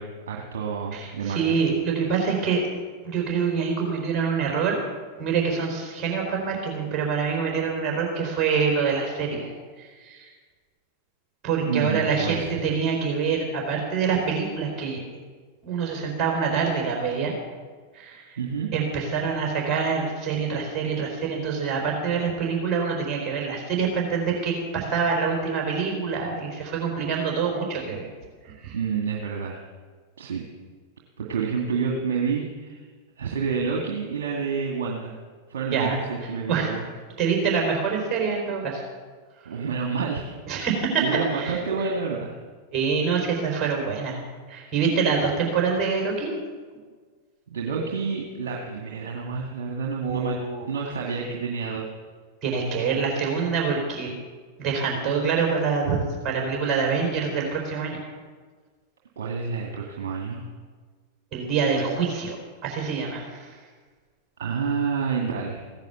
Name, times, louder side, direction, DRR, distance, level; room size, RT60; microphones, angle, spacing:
voice 1, 0.0-1.6 11.6-12.7 18.4-18.7 28.7-29.6 30.2-30.4 31.2-32.9 33.2-35.1 35.5-36.9 39.5-40.3 41.0-42.3 47.5-50.4 50.7-51.9 59.2-60.5 64.4-65.6, right 5 dB, 60° right, -1 dB, 2.0 m, -29 dB
voice 2, 0.9-2.6 3.0-4.8 5.2-9.5 9.8-10.3 11.4-15.0 15.6-17.3 17.9-18.2 18.7-28.1 28.4-28.8 35.7-36.0 36.5-36.7 37.2-38.8 40.5-41.0 41.3-41.6 42.7-44.2 44.5-46.3 50.0-50.5 52.4-54.1 54.6-58.0 61.3-62.4 62.6-63.5, right 5 dB, 35° right, 0 dB, 4.0 m, -25 dB
16.0 x 10.5 x 7.1 m, 1.5 s
figure-of-eight pair, 90°, 0 cm